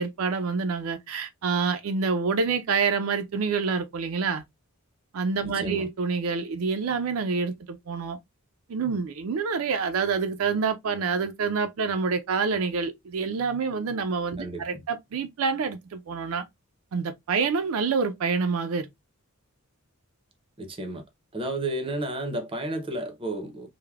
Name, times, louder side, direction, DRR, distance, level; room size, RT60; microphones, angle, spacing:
voice 1, 0.0-4.4 5.1-8.2 8.7-16.5 16.9-18.9, right 5 dB, 75° right, 0.4 m, -27 dB
voice 2, 5.4-5.9 14.4-14.8 20.6-21.0 21.3-23.7, right 1 dB, 25° right, 0.6 m, -32 dB
3.2 x 2.0 x 2.3 m
head